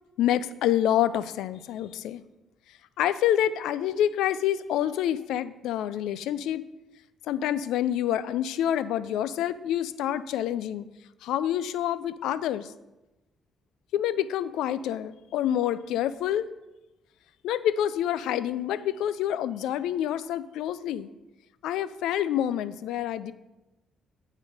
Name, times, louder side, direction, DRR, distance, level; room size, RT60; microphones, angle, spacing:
voice 1, 0.2-2.2 3.0-6.6 7.3-10.8 11.2-12.7 13.9-16.5 17.4-21.1 21.6-23.3, left 11 dB, 90° left, 16 dB, 0.3 m, -27 dB
9.8 x 4.1 x 5.3 m, 0.99 s
cardioid pair, 90°, 0 cm